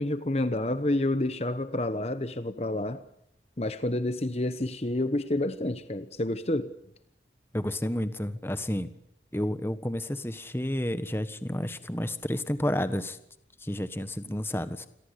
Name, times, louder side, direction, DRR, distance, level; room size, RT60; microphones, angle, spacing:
voice 1, 0.0-3.0 3.6-6.7, left 1 dB, 35° left, 1.1 m, -29 dB
voice 2, 7.5-8.9 9.3-13.2 13.6-14.9, left 1 dB, 15° left, 1.4 m, -30 dB
29.0 x 22.5 x 8.4 m
head